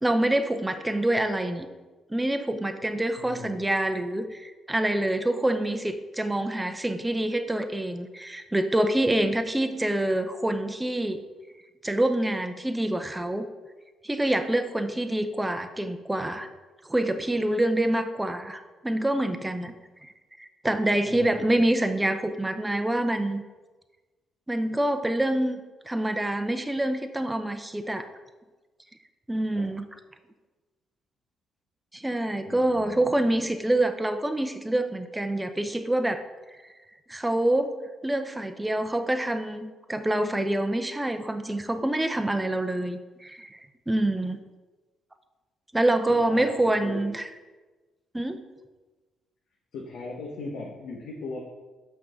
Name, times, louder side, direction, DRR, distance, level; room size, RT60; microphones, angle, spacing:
voice 1, 0.0-1.7 2.1-11.2 11.8-13.5 14.0-16.5 16.8-19.7 20.0-20.1 20.4-23.4 24.5-25.6 25.9-28.1 29.3-29.8 31.9-36.2 37.1-37.7 38.0-44.4 45.7-47.3 48.1-48.4, right 1 dB, 10° right, 8 dB, 0.6 m, -26 dB
voice 2, 3.2-3.7 21.0-21.6 29.5-29.7 32.5-33.4 46.2-47.1 49.7-51.4, left 3 dB, 75° left, -2 dB, 1.1 m, -39 dB
5.9 x 4.6 x 6.3 m, 1.2 s
cardioid pair, 90°, 0 cm